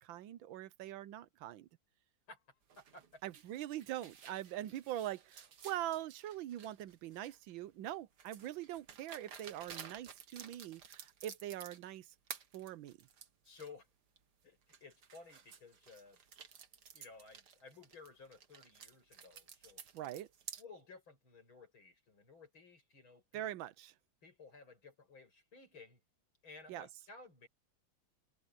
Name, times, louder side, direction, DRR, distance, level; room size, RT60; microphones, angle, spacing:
voice 1, 0.0-1.7 3.2-12.1 12.5-13.1 19.9-20.3 23.3-23.9 26.7-26.9, right 13 dB, 80° right, 1.5 m, -43 dB
voice 2, 2.3-3.2 13.4-13.9 14.4-16.2 16.9-19.8 20.6-23.5 24.2-26.0 26.4-27.5, left 4 dB, 85° left, 8.1 m, -56 dB
sound 1, 2.7-7.5 8.2-12.0 12.3-13.7 14.2-14.3 14.7-20.6, right 7 dB, 60° right, 1.9 m, -53 dB
omnidirectional pair, 2.1 m